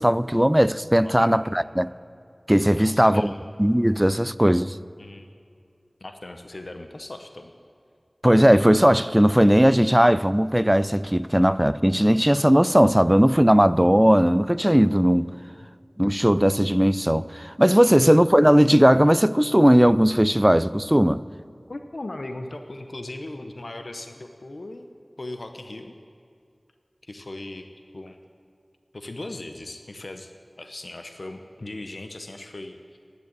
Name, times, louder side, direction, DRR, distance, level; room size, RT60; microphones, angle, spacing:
voice 1, 0.0-1.9 2.5-3.3 3.6-4.8 8.2-15.3 16.0-21.2, equal, 10° right, 0.3 m, -18 dB
voice 2, 1.0-1.6 2.8-3.4 5.0-5.3 6.0-7.5 21.7-24.9 25.2-25.9 27.0-27.7 27.9-28.2 28.9-30.3 30.6-32.8, left 2 dB, 80° left, 0.7 m, -38 dB
10.5 x 9.6 x 8.0 m
wide cardioid pair, 50°, 0 cm